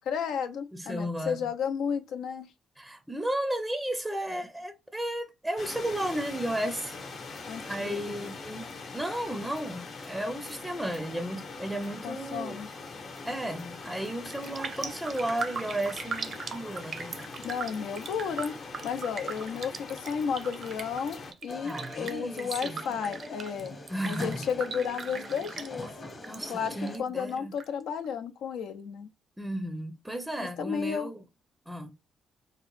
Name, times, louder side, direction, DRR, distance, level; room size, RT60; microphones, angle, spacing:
voice 1, 0.1-2.5 7.4-8.2 12.0-12.7 17.4-18.5 18.8-23.8 24.0-25.9 26.5-29.1 30.4-31.1, left 7 dB, 80° left, 0.6 m, -33 dB
voice 2, 0.7-1.5 2.8-7.0 7.7-12.6 13.2-17.2 21.6-22.8 23.9-24.5 26.2-27.5 29.4-31.2 31.7-31.9, right 1 dB, 5° right, 0.5 m, -34 dB
sound 1, 5.6-21.3, left 3 dB, 55° left, 0.9 m, -42 dB
Raindrop, 13.8-14.1 14.3-26.4 26.7-27.7 28.0-28.1, right 5 dB, 55° right, 0.6 m, -39 dB
sound 2, 21.5-27.0, left 2 dB, 35° left, 1.0 m, -43 dB
3.7 x 2.1 x 3.1 m
cardioid pair, 90°, 0 cm